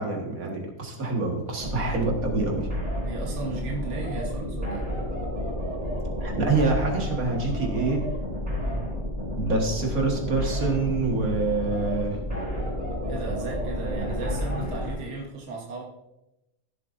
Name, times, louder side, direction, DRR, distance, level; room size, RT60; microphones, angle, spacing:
voice 1, 0.0-2.7 6.2-8.0 9.4-12.2 14.6-14.7, right 3 dB, 80° right, 1 dB, 2.1 m, -26 dB
sound 1, 1.6-15.0, equal, 35° right, 3.7 m, -31 dB
voice 2, 3.0-4.9 8.7-8.8 13.1-15.8, right 4 dB, 55° right, -1 dB, 1.6 m, -35 dB
15.0 x 7.6 x 2.6 m, 0.91 s
omnidirectional pair, 1.5 m